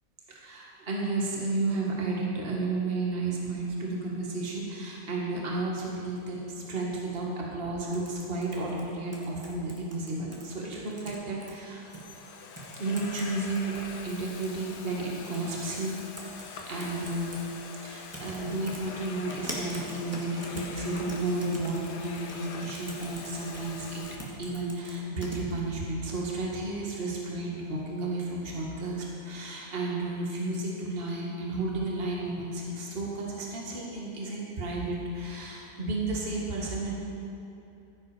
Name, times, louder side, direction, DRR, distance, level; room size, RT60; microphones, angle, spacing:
voice 1, 0.3-11.8 12.8-15.9 16.7-17.3 17.8-24.1 24.4-36.9, right 2 dB, 35° right, -3 dB, 1.8 m, -32 dB
sound 1, 7.9-10.4 10.9-11.5 11.9-12.0 12.6-13.3 13.6-14.6 15.3-15.6 15.9-17.4 18.1-18.4 18.7-25.4, right 1 dB, 10° right, 1.6 m, -43 dB
Domestic sounds home sounds, 10.3-10.7 11.4-24.2, left 5 dB, 75° left, 1.5 m, -44 dB
15.0 x 8.1 x 5.0 m, 2.8 s
omnidirectional pair, 1.8 m